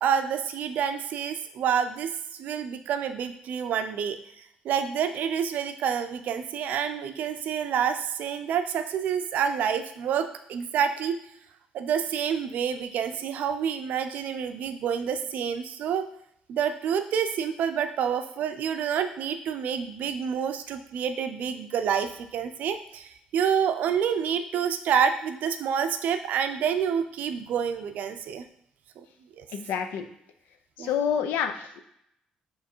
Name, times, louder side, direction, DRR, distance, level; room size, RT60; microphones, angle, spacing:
voice 1, 0.0-2.1 2.4-11.2 11.7-16.1 16.5-28.4 29.0-29.1 29.4-29.5 30.8-30.9, right 7 dB, 70° right, 9 dB, 0.4 m, -28 dB
voice 2, 29.5-30.1 30.8-31.8, left 8 dB, 85° left, 7 dB, 0.5 m, -28 dB
3.5 x 3.0 x 4.3 m, 0.74 s
cardioid pair, 85°, 3 cm